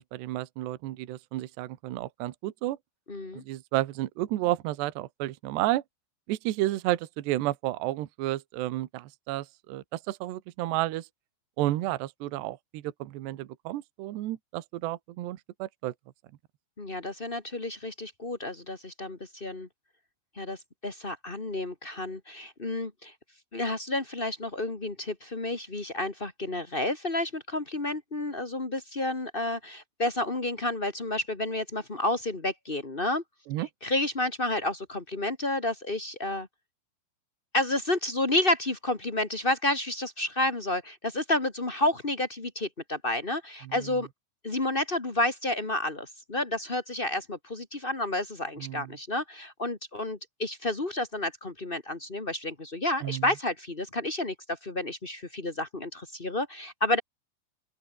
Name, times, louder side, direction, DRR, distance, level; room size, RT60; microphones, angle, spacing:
voice 1, 0.0-2.8 3.3-5.8 6.3-11.1 11.6-15.9 33.5-33.7 43.6-43.9 48.6-49.0 53.0-53.3, right 15 dB, 70° right, 3.2 m, -31 dB
voice 2, 3.1-3.4 16.8-19.7 20.3-23.1 23.5-33.2 33.8-36.5 37.5-44.1 44.4-57.0, left 1 dB, 75° left, 0.5 m, -30 dB
open air
omnidirectional pair, 5.5 m